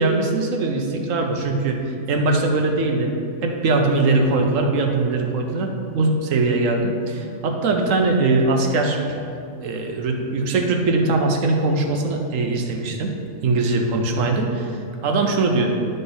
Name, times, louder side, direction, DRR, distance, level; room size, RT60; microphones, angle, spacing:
voice 1, 0.0-1.8 2.1-3.2 3.4-9.0 9.6-13.1 13.4-15.7, right 3 dB, 75° right, 3 dB, 1.2 m, -21 dB
12.0 x 3.9 x 3.9 m, 2.5 s
omnidirectional pair, 1.3 m